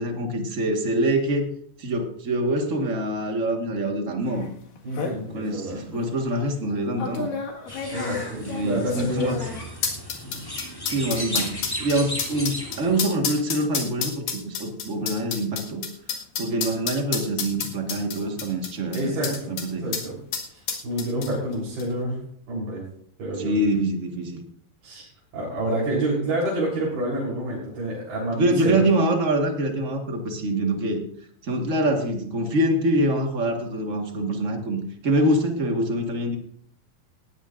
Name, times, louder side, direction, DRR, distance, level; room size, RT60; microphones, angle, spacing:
voice 1, 0.0-1.5 1.8-4.5 5.3-7.3 8.4-9.4 10.8-15.8 16.4-19.1 19.5-19.9 23.4-24.4 28.3-31.0 31.4-36.4, right 1 dB, 50° right, 2 dB, 0.9 m, -25 dB
sound 1, 4.4-4.5 4.8-5.2 5.9-6.1 7.0-19.7 19.9-20.0 20.3-21.5 21.8-21.9, left 6 dB, 70° left, 3.4 m, -30 dB
voice 2, 4.8-5.8 7.9-9.4 10.2-10.5 18.9-20.2 20.5-22.2 22.5-22.8 23.2-23.5 24.8-28.8, right 1 dB, 80° right, -5 dB, 5.7 m, -28 dB
sound 2, 7.7-13.0, equal, 5° left, 2.1 m, -35 dB
18.5 x 15.5 x 2.6 m, 0.64 s
omnidirectional pair, 4.2 m